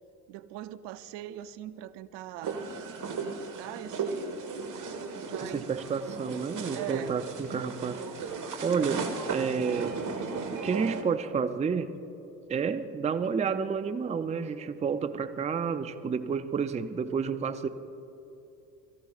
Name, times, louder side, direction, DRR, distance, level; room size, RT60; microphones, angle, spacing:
voice 1, 0.3-2.6 3.2-4.5 5.3-5.7 6.7-7.2, right 13 dB, 60° right, 14 dB, 0.7 m, -41 dB
sound 1, 2.4-11.0, right 4 dB, 40° right, 1.6 m, -36 dB
voice 2, 5.5-8.3 8.6-10.0 10.5-11.9 12.5-17.7, right 6 dB, 15° right, 11 dB, 0.5 m, -30 dB
22.0 x 14.5 x 2.5 m, 3.0 s
hypercardioid pair, 60°, 48 cm